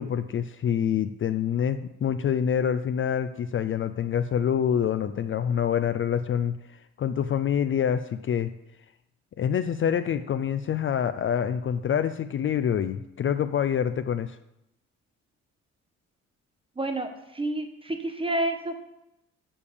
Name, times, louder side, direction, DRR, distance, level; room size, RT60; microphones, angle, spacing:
voice 1, 0.0-8.5 9.4-14.4, left 8 dB, 40° left, 11 dB, 0.4 m, -26 dB
voice 2, 16.8-18.8, right 1 dB, 20° right, 6 dB, 1.3 m, -29 dB
7.0 x 5.1 x 6.9 m, 0.85 s
cardioid pair, 90°, 30 cm